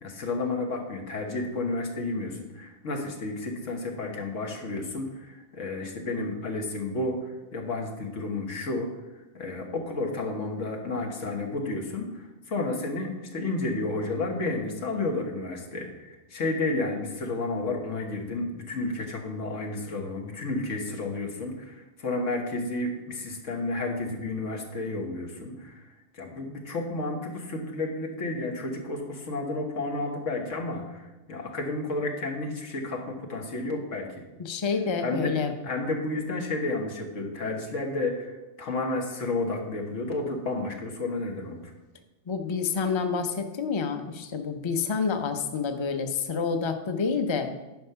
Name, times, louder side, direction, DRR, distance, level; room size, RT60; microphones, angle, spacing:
voice 1, 0.0-8.9 9.3-25.8 26.1-34.2 35.0-35.4 35.6-41.7, left 2 dB, 90° left, 2 dB, 1.7 m, -31 dB
voice 2, 34.4-35.5 42.3-47.5, left 5 dB, 30° left, 7 dB, 0.6 m, -28 dB
10.5 x 5.3 x 5.7 m, 1.1 s
omnidirectional pair, 1.2 m